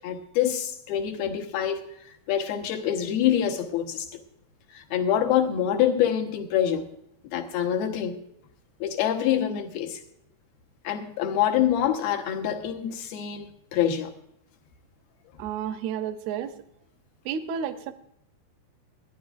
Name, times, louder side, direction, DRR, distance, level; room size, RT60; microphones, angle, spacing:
voice 1, 0.0-1.8 2.3-4.2 4.7-6.9 7.3-8.2 8.8-10.0 10.8-14.1, left 10 dB, 70° left, 3.0 m, -26 dB
voice 2, 15.4-16.6 17.3-17.9, right 8 dB, 80° right, 2.8 m, -31 dB
28.0 x 10.5 x 2.5 m
omnidirectional pair, 4.6 m